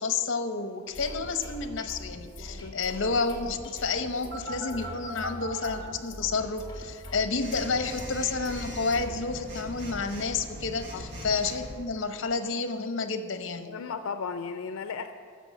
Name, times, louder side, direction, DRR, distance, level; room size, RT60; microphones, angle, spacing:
voice 1, 0.0-13.7, left 4 dB, 60° left, 9 dB, 0.8 m, -30 dB
sound 1, 0.9-9.2, left 1 dB, 20° left, 1.3 m, -43 dB
voice 2, 2.5-2.9 10.9-11.1 13.7-15.2, left 5 dB, 85° left, 9 dB, 0.4 m, -36 dB
Telephone, 4.3-5.7 7.4-11.7, equal, 55° right, 1.6 m, -40 dB
13.5 x 5.5 x 7.7 m, 2.2 s
head